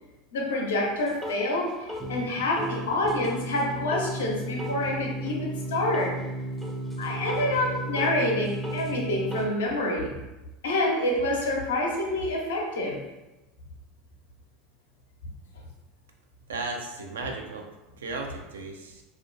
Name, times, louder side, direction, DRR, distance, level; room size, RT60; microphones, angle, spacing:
voice 1, 0.3-6.2 7.0-10.2 10.6-13.0, left 1 dB, 80° left, 0 dB, 0.5 m, -27 dB
sound 1, 1.1-1.4 1.9-9.5, right 1 dB, 10° right, 0.4 m, -34 dB
voice 2, 16.5-17.7 18.0-19.0, right 3 dB, 85° right, 2 dB, 0.4 m, -35 dB
2.4 x 2.1 x 2.5 m, 1.0 s
hypercardioid pair, 90°, 0 cm